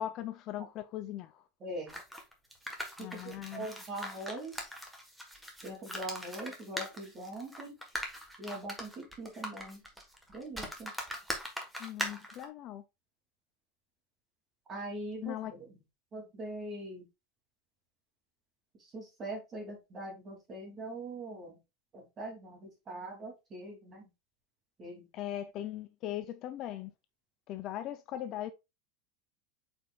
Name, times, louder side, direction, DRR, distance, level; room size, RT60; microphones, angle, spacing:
voice 1, 0.0-1.4 3.0-3.7 11.8-12.8 15.2-15.5 25.1-26.9 27.5-28.5, left 12 dB, 35° left, 0.5 m, -39 dB
voice 2, 1.6-1.9 3.0-4.7 5.6-7.8 8.4-9.8 10.3-10.9 14.7-15.8 16.1-17.1 18.8-21.6 21.9-24.0 24.8-25.1, right 1 dB, 20° right, 2.7 m, -42 dB
sound 1, 1.9-12.4, equal, 5° right, 1.3 m, -41 dB
8.1 x 5.2 x 2.3 m
supercardioid pair, 175°, 0 cm